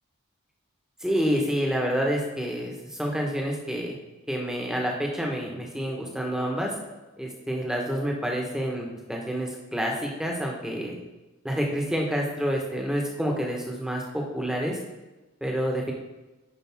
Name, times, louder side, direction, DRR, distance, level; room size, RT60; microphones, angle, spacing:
voice 1, 1.0-2.7 3.0-3.9 4.3-6.7 7.2-11.0 11.4-14.8 15.4-15.9, equal, 5° right, 0 dB, 1.3 m, -28 dB
10.5 x 5.2 x 3.6 m, 1.1 s
head